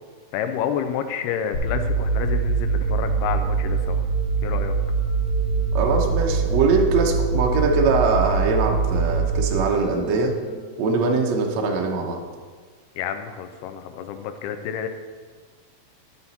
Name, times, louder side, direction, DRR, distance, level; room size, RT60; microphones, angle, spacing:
voice 1, 0.3-4.0 4.4-4.7 13.0-14.9, left 8 dB, 85° left, 7 dB, 2.4 m, -29 dB
sound 1, 1.5-10.5, right 5 dB, 65° left, 2.8 m, -23 dB
voice 2, 5.7-10.3 10.8-12.2, right 4 dB, 90° right, 2 dB, 1.5 m, -22 dB
12.0 x 5.6 x 4.2 m, 1.5 s
omnidirectional pair, 4.6 m